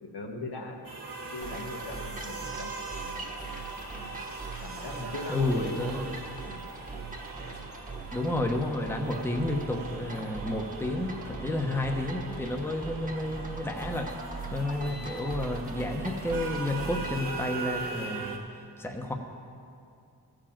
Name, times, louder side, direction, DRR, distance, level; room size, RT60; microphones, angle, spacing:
voice 1, 0.0-0.8 1.3-3.3 4.6-5.8 14.9-15.2, left 2 dB, 70° left, 1 dB, 1.7 m, -39 dB
sound 1, 0.8-18.4, right 3 dB, 55° right, 2.0 m, -40 dB
sound 2, 1.4-17.3, right 3 dB, 20° right, 1.4 m, -41 dB
voice 2, 5.3-6.1 8.1-14.1 14.5-18.4 18.8-19.1, left 1 dB, 5° left, 2 dB, 1.1 m, -31 dB
14.5 x 5.1 x 7.4 m, 2.5 s
cardioid pair, 60°, 41 cm